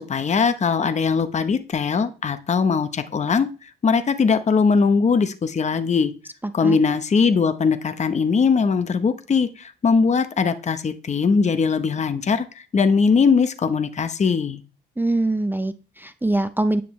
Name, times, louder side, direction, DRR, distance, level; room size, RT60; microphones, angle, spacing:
voice 1, 0.0-6.1 6.5-14.6, left 5 dB, 35° left, 11 dB, 0.9 m, -20 dB
voice 2, 15.0-16.8, right 2 dB, 10° right, 11 dB, 0.7 m, -23 dB
10.0 x 9.0 x 3.2 m, 0.34 s
cardioid pair, 90°, 20 cm